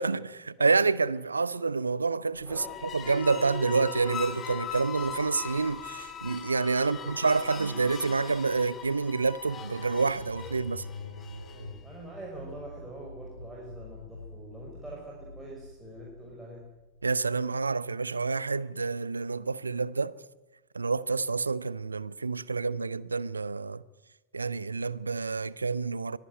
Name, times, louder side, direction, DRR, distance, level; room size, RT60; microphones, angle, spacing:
voice 1, 0.0-10.8 17.0-20.1 20.7-23.8 24.3-26.2, right 4 dB, 75° right, 0.7 m, -28 dB
sound 1, 2.4-11.8, left 8 dB, 25° left, 2.9 m, -40 dB
voice 2, 2.5-2.9 6.8-7.2 11.5-16.6, right 2 dB, 5° right, 6.2 m, -45 dB
sound 2, 9.8-17.6, left 2 dB, 85° left, 2.8 m, -46 dB
24.0 x 17.5 x 9.4 m
figure-of-eight pair, 90°, 0 cm